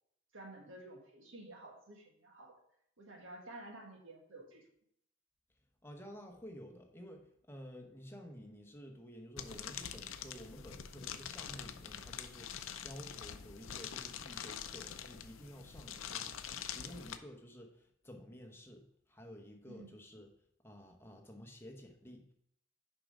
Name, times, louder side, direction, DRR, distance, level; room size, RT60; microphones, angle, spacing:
voice 1, 0.3-2.5 3.0-4.6 19.7-20.0, right 2 dB, 75° right, 1 dB, 1.7 m, -52 dB
voice 2, 5.8-20.3 20.6-22.3, equal, 10° left, 2 dB, 0.9 m, -52 dB
sound 1, 9.4-17.2, left 8 dB, 85° left, 0.6 m, -45 dB
6.8 x 5.3 x 4.9 m, 0.72 s
head